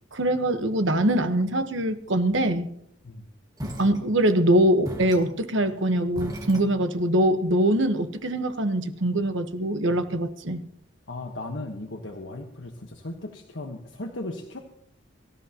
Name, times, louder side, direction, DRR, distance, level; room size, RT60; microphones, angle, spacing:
voice 1, 0.1-2.7 3.6-10.6, right 1 dB, 65° right, 8 dB, 1.2 m, -23 dB
sound 1, 3.6-4.5 4.8-7.2, equal, 20° right, 1.8 m, -38 dB
voice 2, 11.1-14.6, left 2 dB, 65° left, 2 dB, 1.3 m, -36 dB
24.0 x 13.0 x 3.0 m, 0.69 s
head